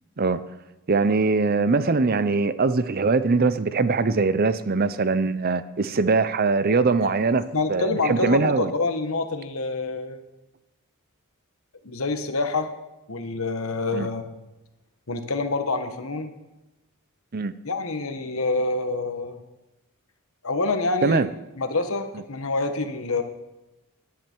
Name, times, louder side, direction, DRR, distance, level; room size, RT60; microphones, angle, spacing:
voice 1, 0.9-8.7 13.9-14.1 17.3-17.5 21.0-21.3, right 4 dB, 45° right, 14 dB, 0.6 m, -22 dB
voice 2, 7.5-10.2 11.8-12.7 13.1-14.2 15.1-16.3 17.6-19.4 20.4-21.2 21.6-23.2, left 3 dB, 70° left, 7 dB, 1.4 m, -26 dB
18.5 x 11.0 x 4.6 m, 1.0 s
head